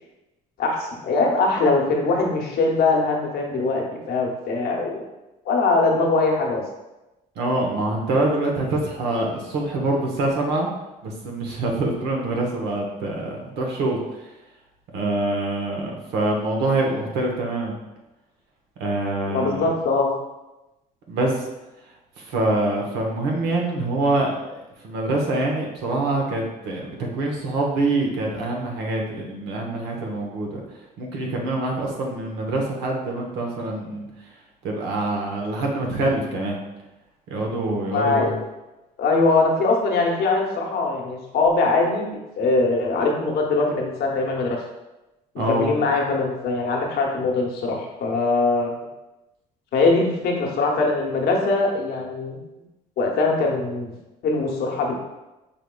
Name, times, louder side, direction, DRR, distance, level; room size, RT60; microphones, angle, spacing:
voice 1, 0.6-5.0 5.4-6.6 19.3-20.1 37.9-38.4 39.0-44.6 45.5-48.7 49.7-52.4 53.0-53.9 54.2-54.9, left 3 dB, 65° left, 0 dB, 0.9 m, -22 dB
voice 2, 7.4-10.7 11.0-14.3 14.9-17.7 18.8-19.7 21.1-21.4 22.2-30.6 31.0-34.1 34.6-36.6 37.3-38.4 45.4-45.7, right 2 dB, 85° right, 0 dB, 1.0 m, -25 dB
5.7 x 3.5 x 2.3 m, 1.0 s
cardioid pair, 110°, 17 cm